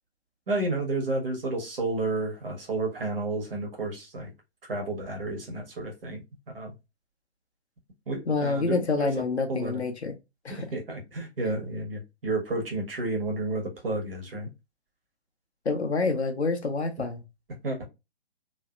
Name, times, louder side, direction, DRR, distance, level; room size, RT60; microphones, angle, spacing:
voice 1, 0.5-4.3 4.7-6.2 6.5-6.7 8.1-9.2 9.5-9.8 10.5-14.5 17.6-17.8, right 2 dB, 55° right, 1.4 m, -31 dB
voice 2, 8.3-10.2 10.4-10.7 15.6-17.2, left 3 dB, 75° left, 0.9 m, -27 dB
3.0 x 2.7 x 2.2 m
figure-of-eight pair, 130°, 34 cm